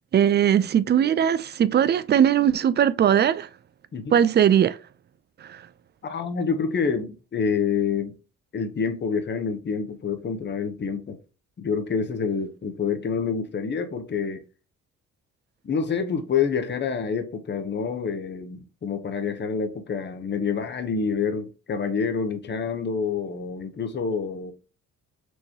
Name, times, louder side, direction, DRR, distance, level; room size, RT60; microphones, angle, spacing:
voice 1, 0.1-3.5 4.1-4.8 5.4-5.6, right 9 dB, 35° right, 0.4 m, -20 dB
voice 2, 6.0-8.2 8.5-11.2 11.6-14.4 15.6-24.5, left 6 dB, 35° left, 0.9 m, -27 dB
4.5 x 3.0 x 2.8 m
cardioid pair, 90°, 30 cm